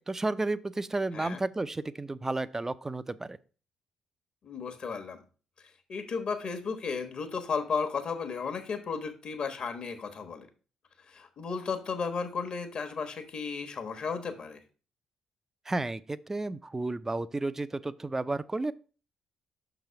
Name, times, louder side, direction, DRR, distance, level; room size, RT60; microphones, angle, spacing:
voice 1, 0.1-3.4 15.7-18.7, right 2 dB, 20° right, 15 dB, 0.5 m, -32 dB
voice 2, 4.4-5.2 5.9-10.5 11.1-14.6, left 5 dB, 50° left, 7 dB, 1.2 m, -34 dB
6.2 x 4.1 x 5.6 m, 0.37 s
hypercardioid pair, 45°, 2 cm